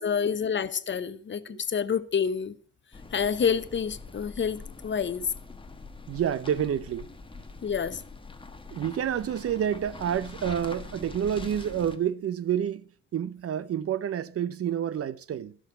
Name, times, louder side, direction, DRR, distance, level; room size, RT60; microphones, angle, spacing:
voice 1, 0.0-2.5 3.1-5.3 7.6-8.0, left 7 dB, 40° left, 0.9 m, -28 dB
voice 2, 1.1-1.6 6.1-7.1 8.7-15.6, right 9 dB, 50° right, 0.7 m, -29 dB
sound 1, 2.9-12.0, left 3 dB, 15° left, 1.5 m, -44 dB
13.0 x 6.2 x 7.7 m
cardioid pair, 90°, 30 cm